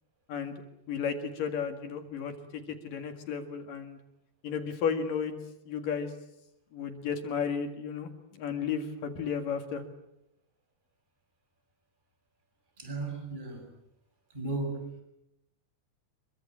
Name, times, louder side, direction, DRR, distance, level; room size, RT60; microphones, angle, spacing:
voice 1, 0.9-4.0 4.4-5.3 5.7-6.1 6.7-8.1 8.4-9.8, left 6 dB, 65° left, 6 dB, 3.6 m, -33 dB
voice 2, 12.8-13.7 14.3-14.9, right 3 dB, 10° right, 3 dB, 6.4 m, -35 dB
27.0 x 23.0 x 8.7 m, 0.85 s
omnidirectional pair, 4.3 m